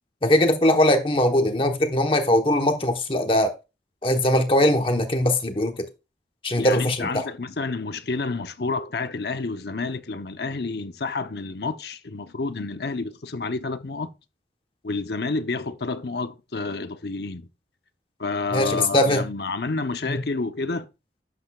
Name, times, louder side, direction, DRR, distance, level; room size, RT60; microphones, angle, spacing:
voice 1, 0.2-3.5 4.0-5.9 6.4-7.3 18.5-19.2 20.1-20.2, left 1 dB, 30° left, 1.1 m, -21 dB
voice 2, 6.6-14.1 14.8-17.5 18.2-20.9, left 3 dB, 65° left, 0.8 m, -29 dB
12.0 x 7.9 x 2.4 m
head